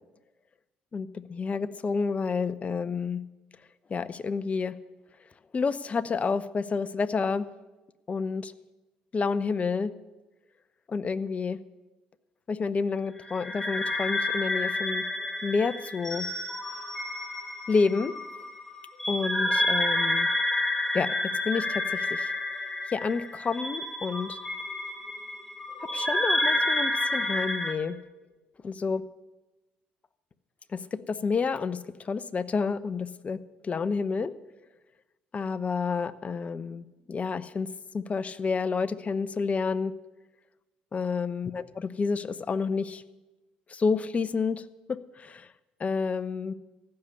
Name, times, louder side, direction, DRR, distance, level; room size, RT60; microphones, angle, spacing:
voice 1, 0.9-3.2 3.9-4.8 5.5-7.5 8.1-8.5 9.1-9.9 10.9-11.6 12.5-15.0 15.4-16.3 17.7-18.1 19.1-20.3 20.9-21.1 21.4-22.3 22.9-24.4 25.9-28.0 28.6-29.0 30.7-31.8 32.0-34.3 35.3-37.7 37.9-39.9 40.9-43.0 43.7-44.6 45.2-45.5 45.8-46.5, left 5 dB, 35° left, 15 dB, 0.8 m, -29 dB
sound 1, 13.3-27.7, left 1 dB, 10° left, 2.1 m, -29 dB
15.0 x 6.8 x 9.8 m, 1.1 s
hypercardioid pair, 65°, 4 cm